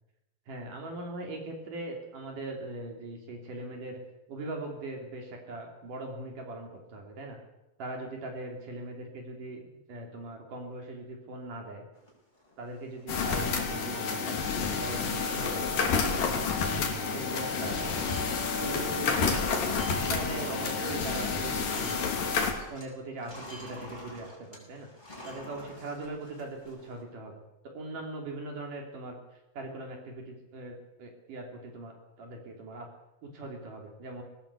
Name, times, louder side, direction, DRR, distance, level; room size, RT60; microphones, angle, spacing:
voice 1, 0.5-4.0 4.3-7.4 7.8-11.8 12.6-16.4 17.1-17.8 18.6-19.5 20.1-22.1 22.7-24.9 25.2-27.4 27.7-29.2 29.5-32.9 33.2-34.2, right 2 dB, 65° right, 2 dB, 4.5 m, -40 dB
sound 1, 12.0-13.0 13.5-13.6 13.8-14.2 14.6-14.9 15.1-16.2 16.5-16.7 17.0-22.9 23.2-27.0, equal, 10° left, 6.6 m, -47 dB
sound 2, 13.1-22.5, left 5 dB, 70° left, 4.3 m, -29 dB
20.5 x 18.5 x 8.3 m, 0.93 s
omnidirectional pair, 4.1 m